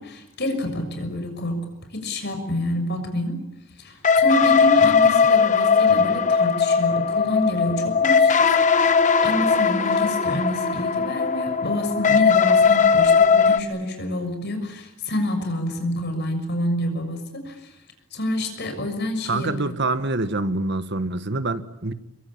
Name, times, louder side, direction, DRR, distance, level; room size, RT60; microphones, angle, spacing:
voice 1, 0.0-1.7 1.9-3.4 3.8-17.7 18.1-19.8, left 1 dB, 50° left, 6.5 m, -28 dB
sound 1, 4.0-13.6, left 5 dB, 35° left, 1.1 m, -18 dB
voice 2, 19.3-21.9, right 2 dB, 55° right, 1.5 m, -25 dB
26.0 x 23.5 x 8.7 m
head